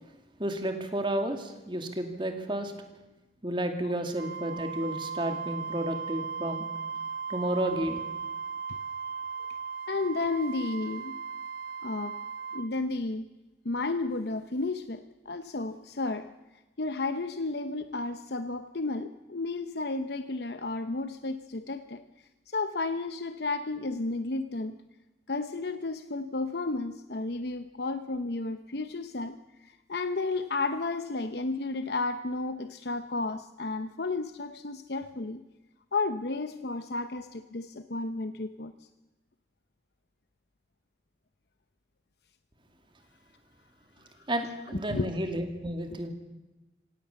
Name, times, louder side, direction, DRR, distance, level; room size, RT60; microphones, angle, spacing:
voice 1, 0.4-2.7 3.4-6.7 7.3-8.0 44.3-46.1, right 1 dB, 25° right, 5 dB, 2.4 m, -31 dB
Wind instrument woodwind instrument, 4.2-12.7, right 6 dB, 50° right, 1.1 m, -37 dB
voice 2, 9.9-11.1 11.8-12.2 12.5-13.3 13.6-16.3 16.8-22.0 22.5-24.8 25.3-35.4 35.9-38.7 44.2-44.3 44.9-45.1 45.9-46.0, left 3 dB, 60° left, 10 dB, 0.8 m, -32 dB
26.0 x 17.0 x 7.1 m, 1.1 s
head